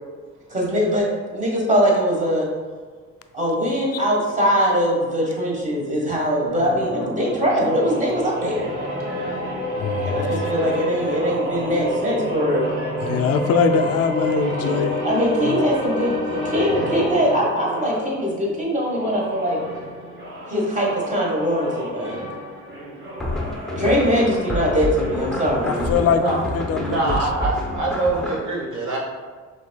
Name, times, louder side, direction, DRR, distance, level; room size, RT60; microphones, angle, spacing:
voice 1, 0.5-2.5 3.3-8.7 10.0-12.7 15.0-19.6 20.5-22.2 23.7-26.1, equal, 25° right, -3 dB, 1.3 m, -22 dB
sound 1, 6.5-18.1 18.8-25.9, equal, 40° right, 1.4 m, -29 dB
voice 2, 9.8-10.5 13.0-15.0 15.4-15.6 23.7-23.9 25.6-27.3, left 6 dB, 55° left, 8 dB, 0.4 m, -22 dB
sound 2, 23.2-28.4, left 1 dB, ahead, 0.7 m, -28 dB
voice 3, 26.9-29.0, right 3 dB, 65° right, -3 dB, 1.4 m, -24 dB
5.1 x 3.6 x 2.2 m, 1.5 s
cardioid pair, 90°, 30 cm